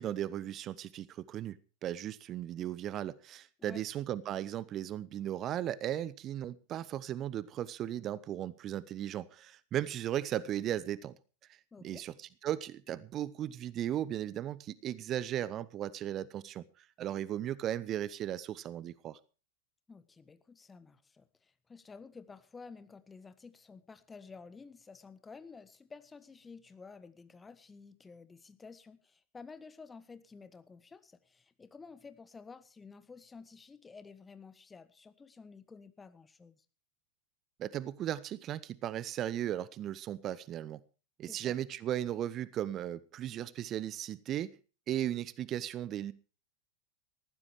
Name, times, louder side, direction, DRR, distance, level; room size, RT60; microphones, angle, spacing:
voice 1, 0.0-1.6 1.8-11.2 11.8-12.1 12.4-19.2 37.6-40.8 41.2-44.6 44.9-46.1, right 11 dB, 30° right, 0.7 m, -36 dB
voice 2, 11.7-12.0 19.9-36.6 41.2-41.6, left 4 dB, 15° left, 1.4 m, -52 dB
19.5 x 15.0 x 3.2 m
figure-of-eight pair, 90°, 0 cm